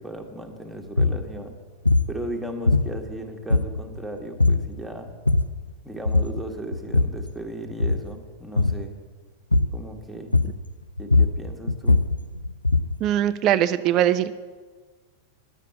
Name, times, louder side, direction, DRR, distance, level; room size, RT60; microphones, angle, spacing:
voice 1, 0.0-1.6 2.1-5.1 5.8-9.0 9.7-10.4 11.0-12.0, right 1 dB, 5° right, 2 dB, 1.5 m, -36 dB
sound 1, 0.9-1.2 1.9-2.2 2.7-3.2 3.5-4.0 4.4-4.7 5.1-5.6 6.1-6.4 6.7-7.3 7.7-8.1 8.6-8.9 9.5-9.9 10.3-10.7 11.0-13.0, left 3 dB, 85° left, 0.4 m, -21 dB
voice 2, 13.0-14.3, right 11 dB, 35° right, 12 dB, 0.4 m, -21 dB
11.0 x 7.5 x 7.5 m, 1.4 s
figure-of-eight pair, 90°, 0 cm